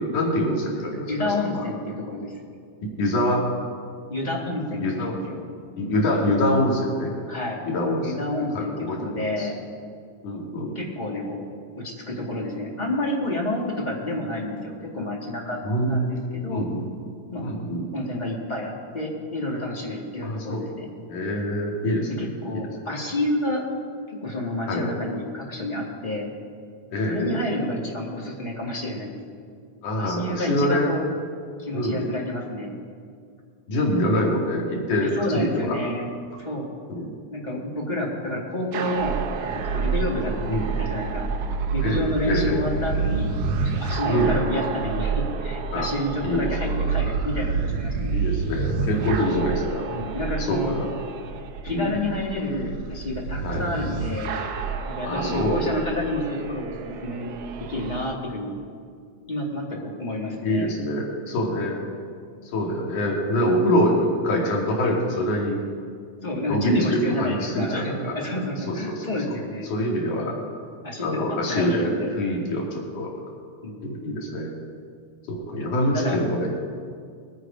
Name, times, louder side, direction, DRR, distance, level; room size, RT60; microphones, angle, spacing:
voice 1, 0.0-1.3 3.0-3.5 4.8-5.2 5.8-7.1 7.6-8.1 8.5-9.5 10.2-10.7 15.6-16.1 16.5-16.9 17.4-17.8 20.2-20.7 21.1-22.3 22.9-23.0 24.7-24.9 26.9-27.4 29.8-30.9 31.7-32.1 33.7-35.8 36.9-37.1 40.5-40.7 41.8-42.7 44.1-44.4 45.7-45.9 46.2-47.0 48.1-49.8 50.4-50.9 51.7-51.9 53.4-53.6 55.0-55.6 60.4-61.8 62.5-65.6 66.5-68.1 68.7-69.1 69.7-70.3 71.0-73.1 73.8-74.5 75.3-76.5, equal, 85° left, -1 dB, 3.5 m, -25 dB
voice 2, 1.1-2.3 4.1-5.5 7.3-7.6 8.0-8.7 9.0-9.5 10.7-11.4 11.8-16.6 17.3-17.4 17.9-20.9 22.2-23.6 24.1-26.3 27.1-29.2 30.0-31.1 31.6-32.7 35.1-36.1 36.4-36.7 37.3-41.2 41.7-43.4 43.6-48.2 49.9-50.8 51.6-54.3 54.9-56.7 57.0-57.3 57.7-58.6 59.3-60.8 66.2-69.7 70.8-72.2 73.6-74.1 75.8-76.2, left 1 dB, 20° left, -2 dB, 1.5 m, -29 dB
sound 1, 38.7-58.1, right 5 dB, 70° right, 1.7 m, -28 dB
21.0 x 8.1 x 5.0 m, 2.2 s
omnidirectional pair, 3.4 m